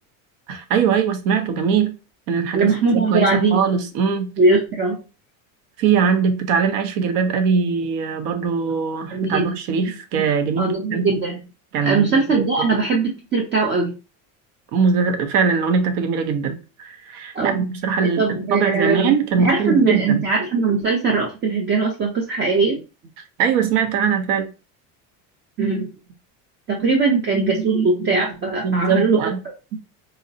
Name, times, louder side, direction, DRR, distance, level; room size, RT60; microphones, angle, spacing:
voice 1, 0.5-1.9 2.3-4.3 5.8-11.1 11.7-12.7 14.7-20.3 23.4-24.5 28.6-29.4, right 6 dB, 80° right, 0.8 m, -21 dB
voice 2, 2.5-3.6 4.4-5.0 9.1-9.6 10.2-10.3 10.6-11.4 11.8-13.9 17.3-17.6 18.2-19.1 19.4-22.8 25.6-25.9 26.7-29.2, right 4 dB, 30° right, 0.5 m, -20 dB
3.8 x 2.0 x 2.7 m
cardioid pair, 145°, 40 cm